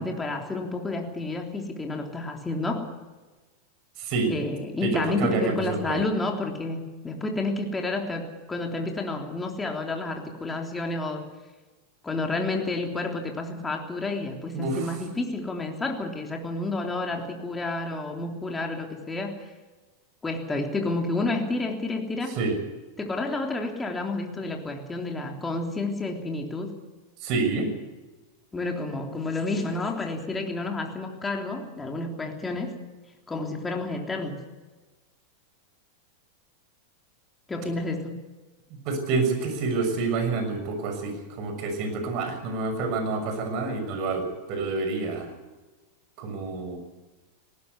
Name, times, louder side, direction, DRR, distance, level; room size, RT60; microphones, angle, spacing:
voice 1, 0.0-2.9 4.3-11.2 12.0-19.4 20.2-22.4 23.0-26.7 28.5-32.8 33.3-34.4 37.5-38.1, left 2 dB, 15° left, 2 dB, 3.5 m, -30 dB
voice 2, 4.0-4.3 4.8-6.0 14.5-15.0 22.4-22.6 27.2-27.7 38.8-45.3 46.2-46.8, right 3 dB, 50° right, 7 dB, 6.4 m, -28 dB
19.0 x 18.5 x 8.2 m, 1.2 s
hypercardioid pair, 105°, 0 cm